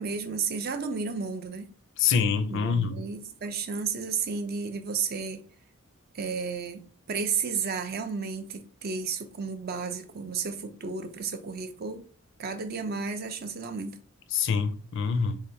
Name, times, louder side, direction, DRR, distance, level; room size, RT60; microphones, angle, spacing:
voice 1, 0.0-1.7 2.5-5.5 6.1-12.1 12.4-14.0, right 5 dB, 45° right, 0.5 m, -32 dB
voice 2, 2.0-3.0 14.3-15.4, left 6 dB, 55° left, 0.4 m, -25 dB
3.7 x 3.2 x 2.6 m
head